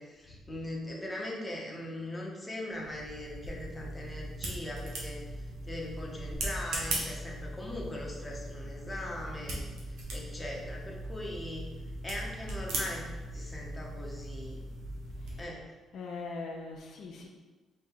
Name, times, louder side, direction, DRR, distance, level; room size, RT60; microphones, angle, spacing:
voice 1, 0.0-9.6 9.9-11.7 12.0-14.6 15.4-15.6, left 1 dB, 15° left, -2 dB, 0.8 m, -40 dB
sound 1, 2.7-15.4, right 1 dB, 85° right, 0.9 m, -39 dB
voice 2, 15.9-17.3, left 3 dB, 70° left, 0 dB, 0.5 m, -41 dB
3.4 x 2.7 x 3.7 m, 1.2 s
cardioid pair, 90°, 0 cm